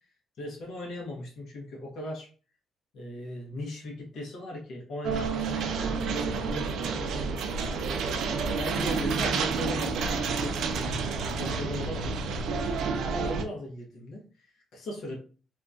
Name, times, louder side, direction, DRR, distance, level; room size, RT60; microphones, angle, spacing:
voice 1, 0.4-2.3 2.9-7.8 8.6-12.2 13.0-15.2, left 1 dB, 75° left, -3 dB, 1.0 m, -38 dB
sound 1, 5.0-13.4, right 4 dB, 80° right, 0.4 m, -29 dB
2.8 x 2.3 x 2.5 m, 0.37 s
cardioid pair, 90°, 0 cm